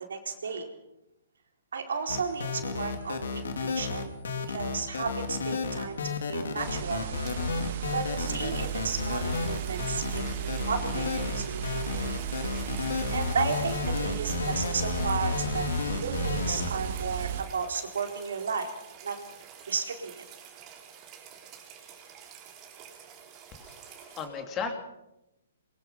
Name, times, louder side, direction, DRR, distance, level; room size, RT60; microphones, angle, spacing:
voice 1, 0.1-0.7 1.7-4.1 4.5-7.1 7.9-12.1 13.1-15.7 16.0-18.7 19.0-19.2 19.7-20.3, right 5 dB, 80° right, 4 dB, 4.2 m, -33 dB
sound 1, 2.1-16.7, left 5 dB, 75° left, 3.6 m, -32 dB
sound 2, 6.6-17.4, right 11 dB, 55° right, 2.3 m, -35 dB
sound 3, 7.2-24.3, right 8 dB, 30° right, 4.0 m, -49 dB
voice 2, 23.5-24.8, left 5 dB, 20° left, 5 dB, 3.1 m, -36 dB
23.0 x 21.0 x 5.9 m, 0.89 s
hypercardioid pair, 145°, 0 cm